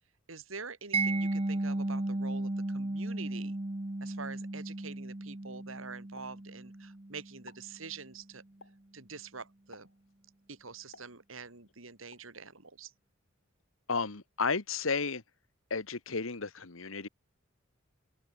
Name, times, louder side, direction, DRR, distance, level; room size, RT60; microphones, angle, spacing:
voice 1, 0.3-3.5 4.0-8.4 8.9-9.9 10.5-12.9, right 4 dB, 85° right, 3.4 m, -46 dB
Mallet percussion, 0.9-7.7, right 2 dB, 30° right, 1.0 m, -35 dB
Explosion, 6.2-7.0 7.3-7.8 8.6-9.0 9.7-10.1 10.9-11.6 12.1-12.4, left 3 dB, 65° left, 7.1 m, -57 dB
voice 2, 13.9-15.2 15.7-17.1, left 4 dB, 85° left, 1.5 m, -33 dB
open air
head